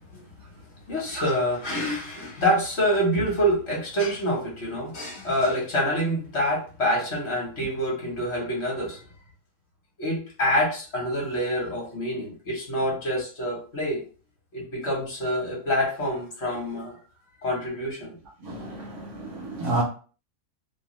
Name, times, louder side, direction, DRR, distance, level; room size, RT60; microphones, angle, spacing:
voice 1, 0.9-9.0 10.0-14.0 14.5-17.0 17.4-18.2 19.6-19.7, equal, 50° left, 1.1 m, -26 dB
voice 2, 18.4-19.8, right 2 dB, 70° right, 0.8 m, -30 dB
2.6 x 2.3 x 2.9 m
omnidirectional pair, 1.6 m